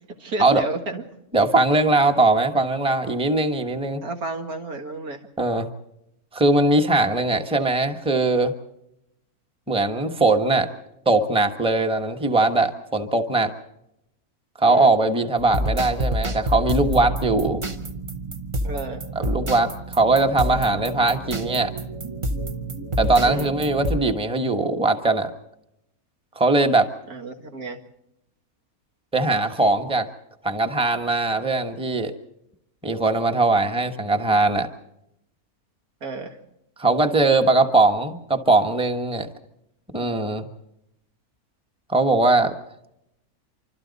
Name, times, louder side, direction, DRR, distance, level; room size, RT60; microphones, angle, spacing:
voice 1, 0.2-1.0 4.0-5.2 14.6-14.9 18.6-19.0 23.2-23.5 27.1-27.8 36.0-36.4, right 2 dB, 85° right, 4 dB, 2.4 m, -31 dB
voice 2, 1.3-4.0 5.4-5.7 6.3-8.5 9.7-10.7 11.0-13.5 14.6-17.6 19.1-21.7 23.0-25.3 26.4-26.9 29.1-30.1 30.4-32.1 32.8-34.7 36.8-39.3 39.9-40.5 41.9-42.5, right 2 dB, 5° right, 6 dB, 1.0 m, -20 dB
sound 1, 15.4-24.0, right 1 dB, 25° right, 0.8 m, -28 dB
26.0 x 25.0 x 4.1 m, 0.83 s
omnidirectional pair, 1.5 m